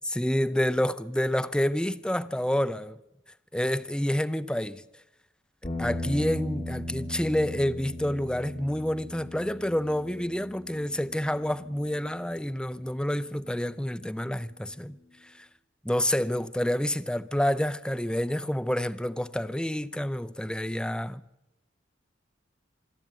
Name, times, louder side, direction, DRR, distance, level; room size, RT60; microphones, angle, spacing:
voice 1, 0.1-3.0 3.5-4.8 5.6-15.0 15.2-15.5 15.8-21.2, equal, 5° left, 0.6 m, -28 dB
sound 1, 5.6-14.0, left 1 dB, 35° left, 5.0 m, -39 dB
25.5 x 11.5 x 9.3 m
head